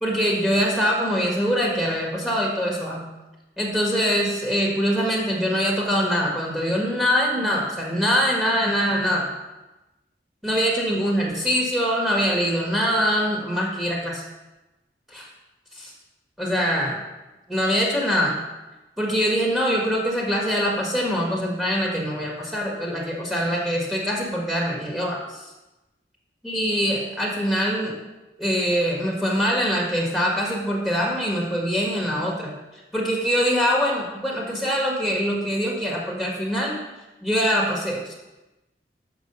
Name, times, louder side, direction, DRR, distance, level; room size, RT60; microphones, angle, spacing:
voice 1, 0.0-3.1 3.6-9.3 10.4-14.2 15.1-15.3 15.7-15.9 16.4-17.0 17.5-18.4 19.0-25.5 26.4-27.9 28.4-32.5 32.9-36.8 37.2-38.1, equal, 5° right, -3 dB, 1.4 m, -23 dB
6.3 x 5.3 x 6.8 m, 1.0 s
head